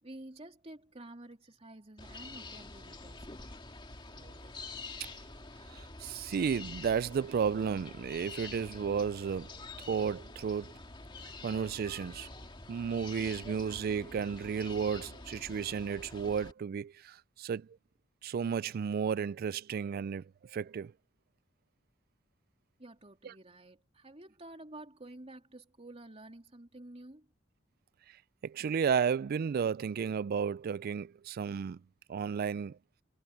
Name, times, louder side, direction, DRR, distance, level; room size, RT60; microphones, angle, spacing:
voice 1, 0.0-3.3 22.8-27.3, right 1 dB, 30° right, 3.3 m, -50 dB
sound 1, 2.0-16.5, left 3 dB, 25° left, 2.3 m, -47 dB
voice 2, 5.7-9.5 9.9-10.7 11.4-12.3 12.7-17.7 18.2-20.2 20.5-20.9 28.4-31.8 32.1-32.8, right 6 dB, 50° right, 0.3 m, -33 dB
head